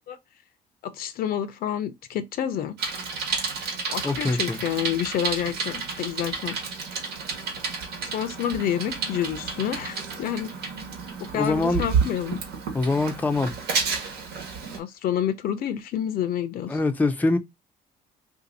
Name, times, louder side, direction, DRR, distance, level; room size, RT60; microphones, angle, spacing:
voice 1, 0.9-2.8 3.9-6.6 8.1-10.6 11.2-12.4 14.8-16.8, left 10 dB, 60° left, 0.5 m, -28 dB
Bicycle, 2.8-14.8, right 5 dB, 75° right, 1.2 m, -31 dB
voice 2, 4.0-4.6 11.3-11.8 12.7-13.5 16.7-17.4, left 3 dB, 10° left, 0.5 m, -24 dB
2.7 x 2.5 x 3.9 m
cardioid pair, 110°, 17 cm